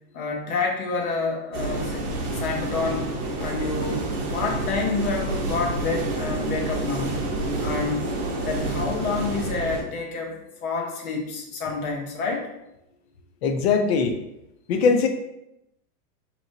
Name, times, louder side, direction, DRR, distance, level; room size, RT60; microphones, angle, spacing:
voice 1, 0.1-2.0 2.4-3.1 3.4-7.2 7.6-8.1 8.4-10.4 10.6-12.5, left 4 dB, 65° left, 1 dB, 1.1 m, -28 dB
sound 1, 1.5-9.8, right 2 dB, 40° right, 1.0 m, -28 dB
voice 2, 13.4-14.2 14.7-15.1, left 5 dB, 45° left, 5 dB, 0.5 m, -20 dB
4.7 x 3.0 x 2.7 m, 0.87 s
supercardioid pair, 155°, 46 cm